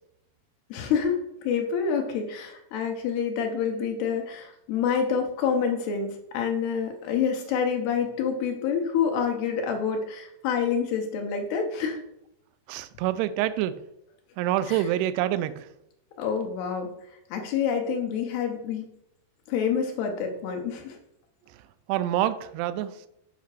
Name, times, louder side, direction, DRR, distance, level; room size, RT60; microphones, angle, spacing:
voice 1, 0.7-12.0 14.7-14.8 16.2-16.9 17.3-18.9 19.5-21.0, left 6 dB, 75° left, 2.7 m, -27 dB
voice 2, 12.7-13.8 14.4-15.7 21.9-23.1, right 12 dB, 85° right, 2.7 m, -26 dB
8.2 x 5.6 x 4.8 m
omnidirectional pair, 4.9 m